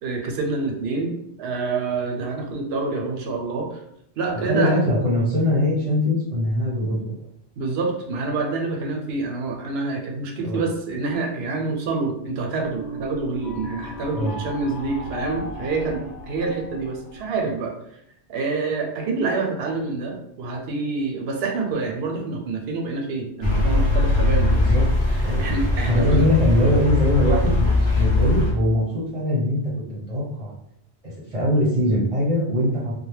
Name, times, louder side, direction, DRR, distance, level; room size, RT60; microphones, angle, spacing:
voice 1, 0.0-3.8 4.2-4.8 7.6-17.7 18.3-24.8 25.1-26.2, right 3 dB, 70° right, 2 dB, 0.8 m, -27 dB
voice 2, 4.4-7.2 10.4-10.6 14.1-14.3 24.5-24.8 25.2-25.4 25.9-30.5 31.0-32.9, left 1 dB, 35° right, -6 dB, 0.7 m, -22 dB
sound 1, 12.6-17.6, equal, 85° left, 0.9 m, -36 dB
sound 2, 23.4-28.5, left 2 dB, 30° left, 0.6 m, -20 dB
2.2 x 2.1 x 3.1 m, 0.75 s
omnidirectional pair, 1.2 m